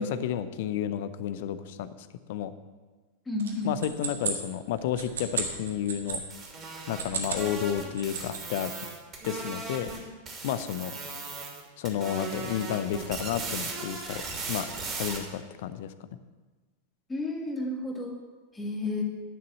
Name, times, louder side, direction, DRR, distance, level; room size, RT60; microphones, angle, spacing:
voice 1, 0.0-1.9 2.3-2.5 3.6-6.2 6.9-8.7 9.2-9.9 10.4-10.9 11.8-14.2 14.5-14.7 15.0-15.9, left 10 dB, 50° left, 13 dB, 0.7 m, -31 dB
voice 2, 3.3-3.7 17.1-18.2 18.5-19.0, left 2 dB, 10° left, 1 dB, 2.1 m, -31 dB
sound 1, 3.4-6.2 6.8-7.5 7.8-8.6, right 6 dB, 65° right, 1.6 m, -34 dB
sound 2, 6.1-10.0 10.3-11.6 11.9-15.2, right 3 dB, 25° right, 2.8 m, -37 dB
10.5 x 6.8 x 7.5 m, 1.3 s
figure-of-eight pair, 90°, 0 cm